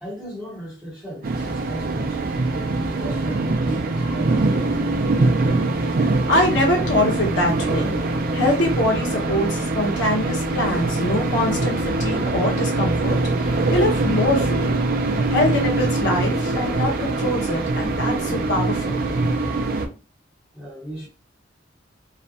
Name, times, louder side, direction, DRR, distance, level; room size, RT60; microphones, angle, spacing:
voice 1, 0.0-2.3 2.8-4.7 20.5-21.1, right 1 dB, 5° right, 0.9 m, -36 dB
sound 1, 1.2-19.9, right 2 dB, 50° right, 0.4 m, -23 dB
voice 2, 6.3-7.9 8.3-14.7 15.3-19.0, left 1 dB, 70° left, 0.9 m, -23 dB
2.4 x 2.2 x 2.7 m
head